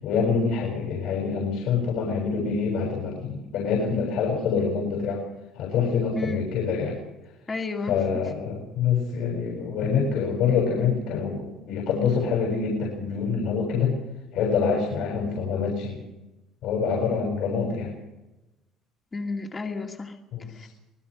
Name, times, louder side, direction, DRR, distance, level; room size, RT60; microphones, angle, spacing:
voice 1, 0.0-5.2 5.5-7.0 7.9-14.0 14.3-16.0 16.6-17.9 20.3-20.7, left 6 dB, 70° left, -2 dB, 7.4 m, -26 dB
voice 2, 7.5-8.0 19.1-20.2 20.5-20.7, left 3 dB, 25° left, 3 dB, 2.3 m, -31 dB
26.5 x 19.5 x 5.0 m, 0.98 s
cardioid pair, 110°, 0 cm